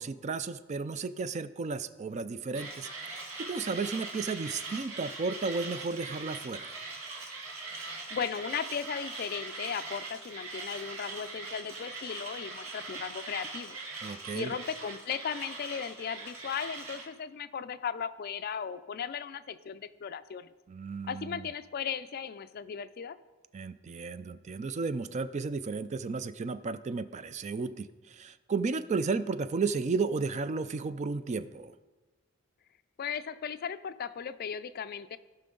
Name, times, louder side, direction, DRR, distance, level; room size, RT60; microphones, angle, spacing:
voice 1, 0.0-6.7 14.0-14.5 20.7-21.5 23.5-31.7, right 4 dB, 35° right, 13 dB, 0.4 m, -33 dB
Mechanisms, 2.5-17.1, right 3 dB, 85° right, 2.0 m, -41 dB
voice 2, 7.7-13.8 14.3-20.5 21.1-23.2 33.0-35.2, left 7 dB, 50° left, 13 dB, 0.4 m, -36 dB
17.0 x 5.7 x 3.8 m, 1.2 s
head